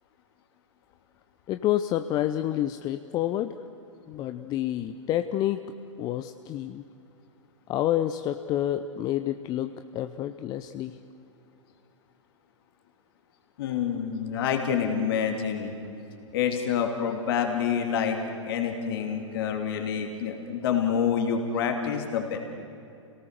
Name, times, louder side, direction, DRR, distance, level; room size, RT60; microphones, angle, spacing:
voice 1, 1.5-3.5 4.1-6.8 7.7-11.0, left 12 dB, 25° left, 9 dB, 0.6 m, -29 dB
voice 2, 13.6-15.7 16.3-18.2 18.4-22.4, left 7 dB, 50° left, 3 dB, 2.8 m, -27 dB
29.5 x 18.0 x 6.8 m, 2.8 s
figure-of-eight pair, 105°, 16 cm